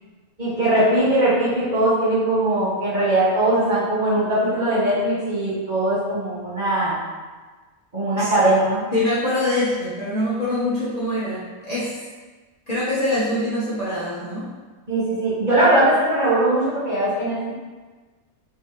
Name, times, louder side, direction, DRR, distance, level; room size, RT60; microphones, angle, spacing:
voice 1, 0.4-7.0 7.9-8.8 14.9-17.5, right 1 dB, 35° right, -11 dB, 1.2 m, -20 dB
voice 2, 8.9-12.0 12.7-14.5, left 1 dB, 35° left, -12 dB, 0.9 m, -24 dB
3.5 x 3.1 x 2.9 m, 1.3 s
omnidirectional pair, 1.5 m